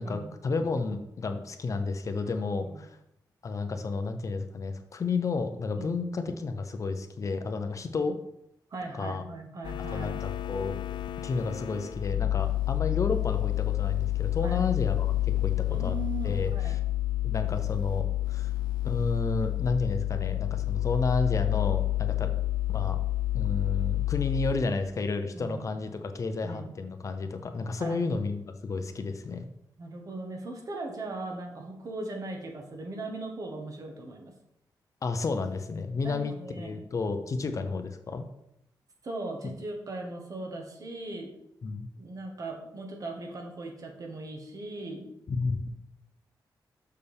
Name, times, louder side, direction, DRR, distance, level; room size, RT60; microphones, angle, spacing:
voice 1, 0.0-3.0 3.4-8.2 8.9-9.2 9.9-10.7 11.2-16.0 16.2-16.8 17.2-18.5 18.8-22.3 22.7-23.0 23.3-29.4 35.0-38.3 39.4-39.5 41.6-41.9 45.3-45.7, left 4 dB, 45° left, 7 dB, 0.6 m, -31 dB
voice 2, 8.7-10.2 14.4-14.6 15.7-16.8 25.3-25.7 26.4-26.7 27.8-28.0 29.8-34.3 36.0-36.9 39.0-41.4 42.0-45.1, right 2 dB, 50° right, 2 dB, 1.4 m, -39 dB
sound 1, 9.6-24.5, left 15 dB, 80° left, 0.3 m, -29 dB
6.7 x 6.6 x 3.5 m, 0.79 s
wide cardioid pair, 125°, 8 cm